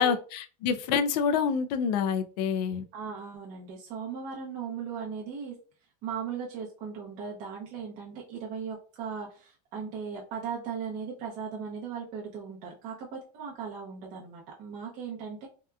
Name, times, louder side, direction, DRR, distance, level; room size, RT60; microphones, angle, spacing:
voice 1, 0.0-2.9, left 6 dB, 80° left, 9 dB, 0.4 m, -27 dB
voice 2, 2.9-5.6 6.0-15.5, right 6 dB, 40° right, -2 dB, 0.6 m, -38 dB
2.8 x 2.2 x 2.3 m, 0.39 s
supercardioid pair, 155°, 21 cm